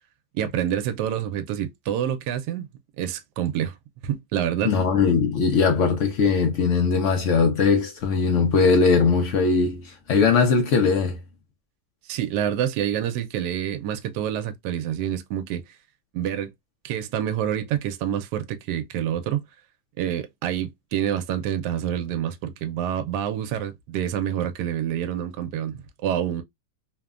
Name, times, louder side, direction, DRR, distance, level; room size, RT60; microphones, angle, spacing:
voice 1, 0.4-2.7 3.0-3.7 4.0-4.7 12.1-15.6 16.1-16.5 16.8-19.4 20.0-26.4, right 10 dB, 75° right, 1.1 m, -27 dB
voice 2, 4.6-11.2, left 5 dB, 70° left, 0.7 m, -20 dB
3.1 x 2.1 x 2.3 m
omnidirectional pair, 1.8 m